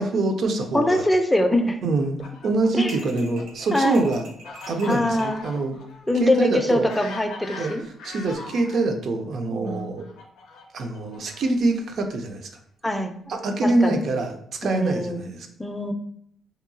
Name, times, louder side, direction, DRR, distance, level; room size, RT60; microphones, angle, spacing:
voice 1, 0.0-1.0 1.8-2.2 2.4-4.3 4.7-5.8 6.1-6.9 7.6-7.7 8.0-10.1 10.7-12.5 13.3-15.5, right 2 dB, 65° right, 5 dB, 0.4 m, -25 dB
voice 2, 0.7-1.8 2.8-3.3 3.7-4.1 4.9-5.4 6.1-7.9 9.5-10.0 12.8-13.2 13.6-14.0 14.6-15.3 15.6-15.9, left 1 dB, 10° left, 6 dB, 0.3 m, -23 dB
Fowl, 1.9-8.8 9.6-11.7, left 3 dB, 85° left, 0.4 m, -41 dB
sound 1, 2.9-5.3, right 2 dB, 80° right, 0.8 m, -45 dB
2.7 x 2.2 x 2.5 m, 0.67 s
cardioid pair, 90°, 0 cm